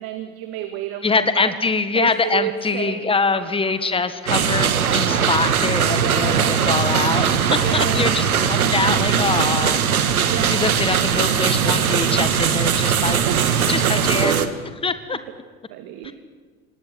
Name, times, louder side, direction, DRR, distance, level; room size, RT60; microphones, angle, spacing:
voice 1, 0.0-1.2 1.9-3.1 5.9-6.9 7.6-8.1 8.6-9.3 10.2-10.8 13.2-14.0 15.7-16.1, right 11 dB, 55° right, 8 dB, 2.0 m, -31 dB
voice 2, 1.0-9.8 10.5-13.2 13.7-14.5 14.8-15.2 16.0-16.1, left 4 dB, 10° left, 12 dB, 1.6 m, -24 dB
Bird vocalization bird call bird song, 3.3-12.3 12.8-13.8, left 7 dB, 60° left, 3.9 m, -43 dB
sound 1, 4.3-14.5, right 7 dB, 80° right, 1.5 m, -20 dB
26.5 x 18.5 x 7.8 m, 1.5 s
figure-of-eight pair, 75°, 43 cm